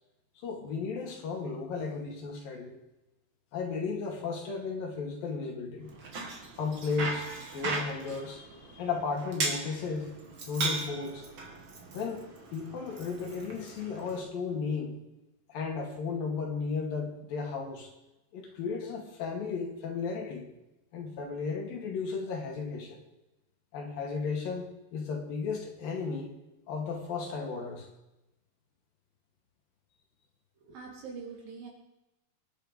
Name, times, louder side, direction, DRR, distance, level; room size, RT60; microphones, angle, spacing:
voice 1, 0.4-2.8 3.5-5.9 6.6-10.1 10.5-11.3 11.9-12.2 12.5-15.0 15.5-17.9 18.3-20.5 20.9-23.0 23.7-26.3 26.7-27.9, left 5 dB, 65° left, 2 dB, 3.9 m, -34 dB
Bicycle, 5.9-14.2, right 3 dB, 40° right, 2.5 m, -38 dB
voice 2, 30.6-31.7, right 5 dB, 65° right, -1 dB, 5.0 m, -43 dB
23.5 x 10.5 x 5.2 m, 0.95 s
omnidirectional pair, 4.5 m